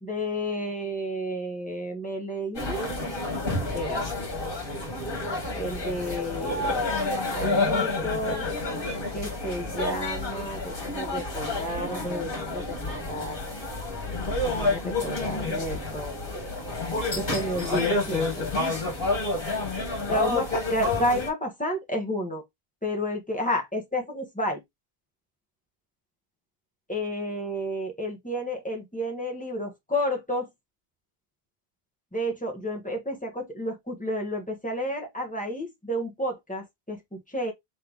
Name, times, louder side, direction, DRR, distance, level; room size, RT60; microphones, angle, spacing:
voice 1, 0.0-2.9 3.7-4.0 5.5-6.8 7.3-8.5 9.1-13.6 14.4-16.1 17.1-18.5 20.1-22.4 22.8-24.6 26.9-30.5 32.1-37.5, equal, 10° left, 1.2 m, -31 dB
sound 1, 2.5-21.3, left 2 dB, 60° left, 1.9 m, -29 dB
4.0 x 3.2 x 3.5 m
omnidirectional pair, 1.0 m